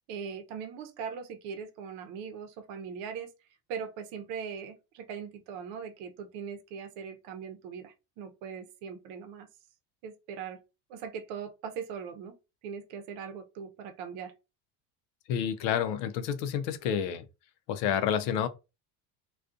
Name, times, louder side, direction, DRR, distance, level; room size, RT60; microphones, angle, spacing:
voice 1, 0.1-3.3 3.7-9.5 10.0-10.6 10.9-12.4 12.6-14.3, right 6 dB, 75° right, 0.7 m, -40 dB
voice 2, 15.3-17.2 17.7-18.5, left 8 dB, 75° left, 0.6 m, -29 dB
2.3 x 2.3 x 2.5 m
cardioid pair, 115°, 43 cm